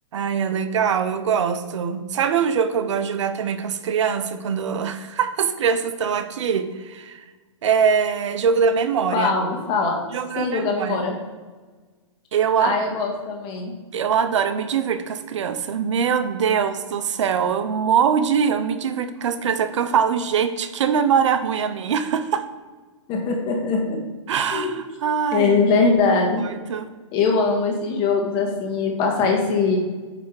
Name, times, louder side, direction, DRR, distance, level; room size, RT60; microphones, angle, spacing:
voice 1, 0.1-7.2 7.6-9.4 10.1-11.0 12.3-12.8 13.9-22.4 24.3-25.8 26.4-26.9, right 7 dB, 65° right, 10 dB, 0.7 m, -23 dB
voice 2, 9.1-10.0 10.4-11.2 12.6-13.7 23.1-24.0 24.5-24.8 25.3-26.4 27.1-29.8, left 4 dB, 30° left, 1 dB, 1.6 m, -21 dB
8.9 x 3.5 x 4.8 m, 1.4 s
hypercardioid pair, 145°, 17 cm